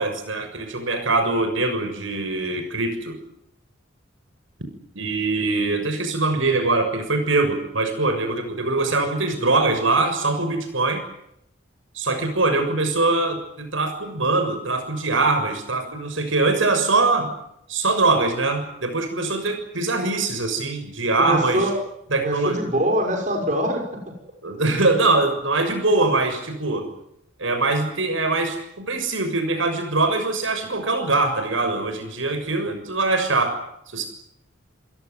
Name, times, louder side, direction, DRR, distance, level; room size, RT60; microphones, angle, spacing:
voice 1, 0.0-3.2 5.0-11.0 12.0-17.3 17.7-21.7 22.1-22.6 24.4-26.9 27.4-33.6 33.9-34.1, right 3 dB, 80° right, 7 dB, 6.8 m, -22 dB
voice 2, 21.2-21.7 22.2-23.8, right 1 dB, 40° right, 2 dB, 6.0 m, -23 dB
27.5 x 17.5 x 9.6 m, 0.78 s
head